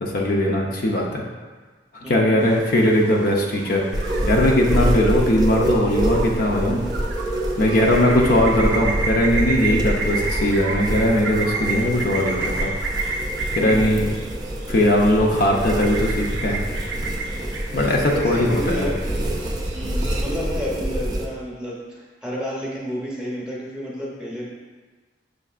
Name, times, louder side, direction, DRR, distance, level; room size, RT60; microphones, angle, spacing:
voice 1, 0.0-1.2 2.0-6.8 7.6-12.7 13.5-14.1 14.7-16.6 17.7-18.9, left 1 dB, 55° left, -1 dB, 0.5 m, -20 dB
voice 2, 2.0-2.5 4.8-5.1 7.8-8.3 13.6-14.0 18.0-19.0 19.7-24.4, equal, 5° right, -6 dB, 0.8 m, -31 dB
sound 1, 2.4-20.2, right 3 dB, 80° right, 0.6 m, -32 dB
sound 2, 3.9-21.3, right 1 dB, 25° right, 0.4 m, -26 dB
6.4 x 2.5 x 2.4 m, 1.3 s
head